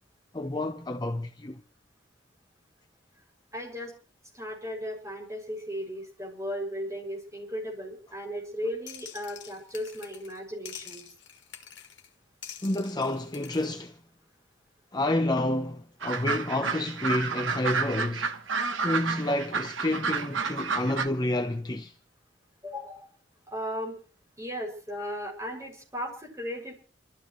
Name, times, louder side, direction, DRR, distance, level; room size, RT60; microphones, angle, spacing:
voice 1, 0.3-1.6 12.6-14.0 14.9-18.3 18.8-21.9, left 1 dB, 20° left, 0.9 m, -29 dB
voice 2, 3.5-3.9 4.3-11.0 22.6-23.1 23.5-24.0 24.4-26.7, equal, 15° right, 6.8 m, -36 dB
sound 1, 8.9-10.4 10.7-12.1 12.4-13.7, left 9 dB, 65° left, 2.1 m, -46 dB
sound 2, 16.0-21.1, right 5 dB, 85° right, 1.4 m, -30 dB
28.5 x 14.0 x 3.2 m
head